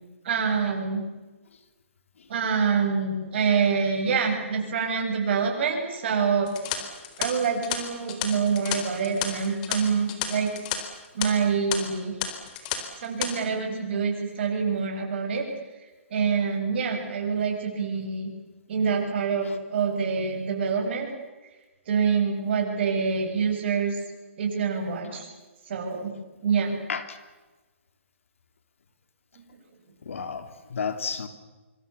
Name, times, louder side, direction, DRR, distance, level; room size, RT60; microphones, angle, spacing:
voice 1, 0.2-1.0 2.3-6.5 7.2-10.5 11.1-12.1 13.0-15.4 16.1-18.3 18.7-21.1 21.9-24.0 24.4-25.3 25.7-26.1 26.4-26.8, right 6 dB, 50° right, 2 dB, 7.8 m, -26 dB
sound 1, 6.5-10.8 11.0-11.3 11.7-11.8 12.2-12.8 13.0-13.3, left 11 dB, 35° left, 4.3 m, -31 dB
voice 2, 30.0-31.3, left 6 dB, 70° left, 9 dB, 3.3 m, -33 dB
26.0 x 25.5 x 7.1 m, 1.2 s
hypercardioid pair, 140°, 7 cm